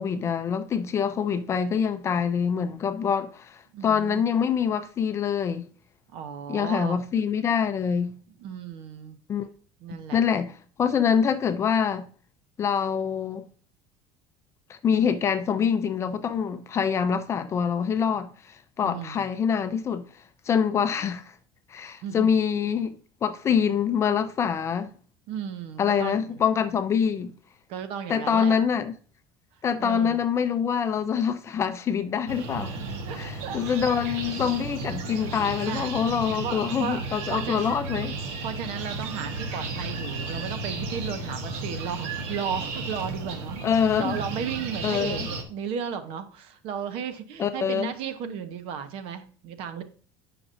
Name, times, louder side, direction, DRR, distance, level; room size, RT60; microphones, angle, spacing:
voice 1, 0.0-5.6 6.5-8.2 9.3-9.4 9.9-10.5 10.8-12.1 12.6-13.4 14.7-20.0 20.5-21.3 21.7-24.9 25.8-27.3 28.1-28.9 29.6-32.7 33.1-38.1 43.6-44.2 44.8-45.3 47.4-47.9, left 7 dB, 25° left, 0.5 m, -25 dB
voice 2, 3.7-4.2 6.1-7.0 8.4-9.2 9.8-10.2 18.8-19.3 22.0-22.3 25.3-26.3 27.7-28.6 29.8-30.2 33.0-33.6 35.6-37.0 37.3-37.7 38.4-43.6 44.0-49.8, right 7 dB, 60° right, 0.9 m, -34 dB
sound 1, 32.3-45.4, right 3 dB, 75° right, 1.4 m, -34 dB
9.6 x 5.9 x 2.6 m
cardioid pair, 165°, 11 cm